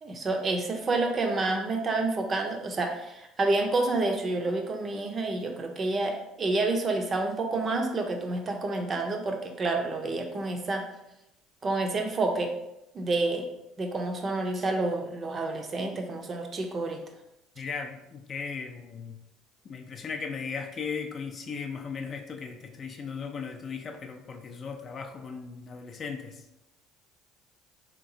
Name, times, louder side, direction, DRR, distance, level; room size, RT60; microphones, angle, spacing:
voice 1, 0.0-10.8 11.6-12.5 12.9-13.5 13.8-17.0, right 2 dB, 35° right, 3 dB, 0.5 m, -29 dB
voice 2, 17.6-19.2 19.6-26.4, left 5 dB, 40° left, 4 dB, 0.4 m, -37 dB
3.3 x 2.9 x 2.6 m, 0.88 s
supercardioid pair, 90°, 0 cm